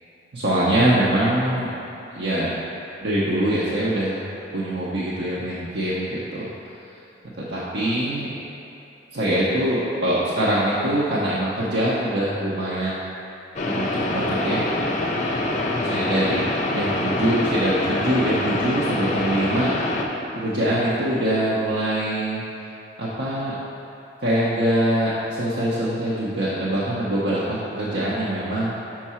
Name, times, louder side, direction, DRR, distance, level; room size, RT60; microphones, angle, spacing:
voice 1, 0.3-1.7 2.1-2.6 3.0-4.3 4.5-6.5 7.4-8.4 9.1-13.0 13.7-14.6 15.8-16.4 16.7-19.7 20.3-22.4 23.0-23.6 24.2-28.8, right 1 dB, 80° right, -8 dB, 0.8 m, -23 dB
sound 1, 13.6-20.1, left 2 dB, 40° left, 0.5 m, -25 dB
6.0 x 4.6 x 4.3 m, 2.8 s
head